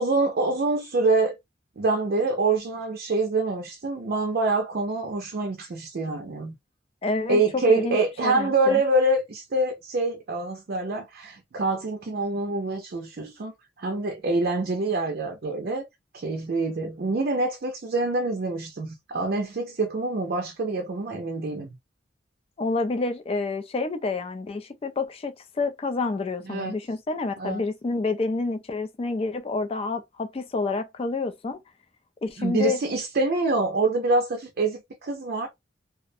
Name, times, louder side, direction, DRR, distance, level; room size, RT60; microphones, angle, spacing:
voice 1, 0.0-1.4 1.8-6.5 7.3-15.9 16.1-21.7 26.4-26.8 27.4-27.6 32.4-35.5, right 2 dB, 55° right, 0.4 m, -26 dB
voice 2, 7.0-7.4 7.7-8.8 22.6-31.6 32.2-32.8, left 3 dB, 30° left, 0.3 m, -28 dB
2.4 x 2.1 x 2.6 m
head